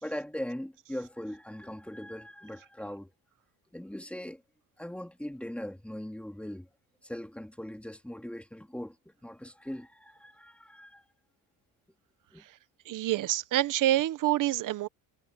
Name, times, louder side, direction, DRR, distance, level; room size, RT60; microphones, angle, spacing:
voice 1, 0.0-3.1 3.7-4.4 4.8-6.7 7.0-11.0 12.3-12.4, left 1 dB, 5° left, 2.1 m, -40 dB
voice 2, 12.9-14.9, right 14 dB, 40° right, 0.7 m, -27 dB
cardioid pair, 170°, 49 cm